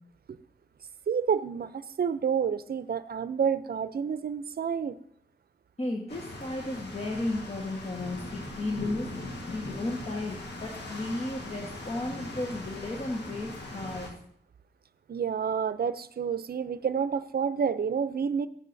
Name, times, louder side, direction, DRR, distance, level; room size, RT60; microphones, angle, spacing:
voice 1, 1.1-5.0 15.1-18.5, right 7 dB, 65° right, 14 dB, 0.5 m, -29 dB
voice 2, 5.8-9.1 9.5-14.1, left 2 dB, 40° left, -1 dB, 1.5 m, -34 dB
sound 1, 6.1-14.1, left 2 dB, 90° left, 1.6 m, -40 dB
13.5 x 8.2 x 2.7 m, 0.68 s
cardioid pair, 55°, 17 cm